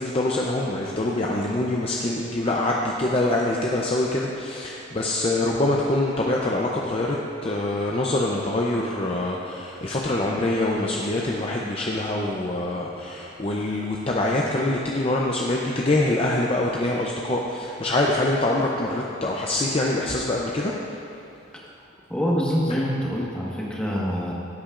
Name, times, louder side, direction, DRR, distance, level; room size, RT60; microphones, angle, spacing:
voice 1, 0.0-7.2 7.4-20.7 22.7-22.9, left 2 dB, 30° left, -2 dB, 0.6 m, -24 dB
voice 2, 22.1-24.3, equal, 5° left, -5 dB, 1.4 m, -25 dB
15.0 x 8.4 x 2.5 m, 2.8 s
head